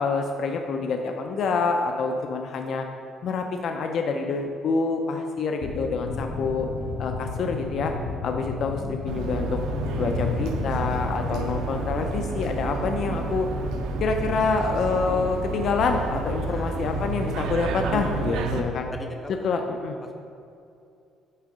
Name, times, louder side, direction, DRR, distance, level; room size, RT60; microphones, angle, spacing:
voice 1, 0.0-2.9 3.2-6.7 7.0-7.9 8.2-9.6 9.9-13.5 14.0-18.9 19.4-20.0, left 4 dB, 50° left, 4 dB, 0.4 m, -27 dB
sound 1, 5.6-14.6, left 4 dB, 70° left, 0.9 m, -33 dB
sound 2, 9.1-18.6, right 3 dB, 80° right, 0.6 m, -30 dB
voice 2, 16.5-16.8 18.9-19.5, left 1 dB, 15° left, 2 dB, 0.7 m, -38 dB
8.7 x 3.8 x 4.9 m, 2.5 s
cardioid pair, 150°, 0 cm